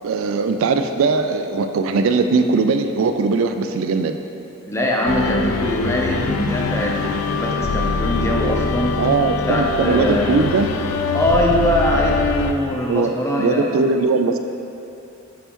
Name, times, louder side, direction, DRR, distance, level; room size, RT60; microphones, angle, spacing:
voice 1, 0.0-4.2 9.0-10.7 12.9-14.4, right 4 dB, 70° right, 7 dB, 0.4 m, -19 dB
voice 2, 4.7-8.9 9.5-10.3 11.1-13.7, equal, 15° left, -2 dB, 0.7 m, -22 dB
sound 1, 5.1-12.5, left 4 dB, 85° left, 0.4 m, -23 dB
8.5 x 5.4 x 3.0 m, 2.7 s
head